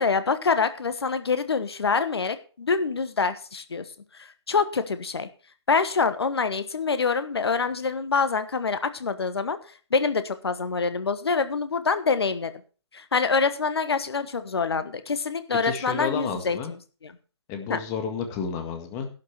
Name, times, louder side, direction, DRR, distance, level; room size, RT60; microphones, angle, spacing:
voice 1, 0.0-3.8 4.1-5.3 5.7-9.6 9.9-12.5 12.9-17.1 17.7-17.8, left 5 dB, 65° left, 12 dB, 1.4 m, -26 dB
voice 2, 15.6-16.7 17.5-19.1, left 6 dB, 20° left, 6 dB, 1.8 m, -31 dB
11.5 x 6.6 x 6.9 m, 0.37 s
figure-of-eight pair, 130°, 14 cm